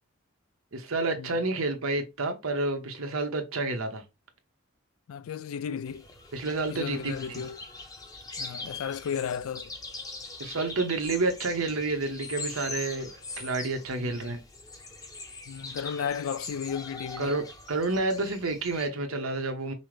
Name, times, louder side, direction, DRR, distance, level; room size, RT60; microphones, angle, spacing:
voice 1, 0.7-4.0 6.3-7.4 10.4-13.1 13.4-14.4 17.2-19.7, right 3 dB, 85° right, 1.0 m, -29 dB
voice 2, 5.1-6.0 6.7-7.6 8.4-9.7 14.0-14.4 15.5-17.3, left 7 dB, 85° left, 0.3 m, -34 dB
sound 1, 5.8-18.9, left 3 dB, 20° left, 0.7 m, -42 dB
5.5 x 2.1 x 3.1 m
head